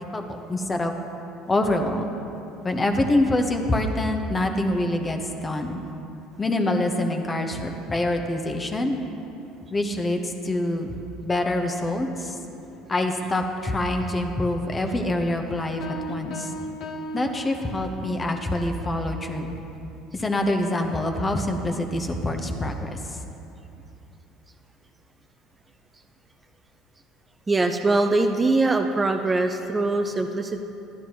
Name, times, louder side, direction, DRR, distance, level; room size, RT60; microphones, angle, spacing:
voice 1, 0.1-0.9 1.5-2.1 2.6-5.8 6.4-9.0 9.7-10.9 11.2-12.4 12.9-15.8 16.1-16.5 17.1-19.6 20.1-22.9, left 1 dB, 25° left, 4 dB, 1.0 m, -25 dB
sound 1, 15.8-18.2, equal, 50° left, 1.0 m, -36 dB
voice 2, 27.5-30.6, right 2 dB, 20° right, 5 dB, 0.5 m, -22 dB
12.5 x 11.0 x 3.0 m, 2.9 s
hypercardioid pair, 65°, 0 cm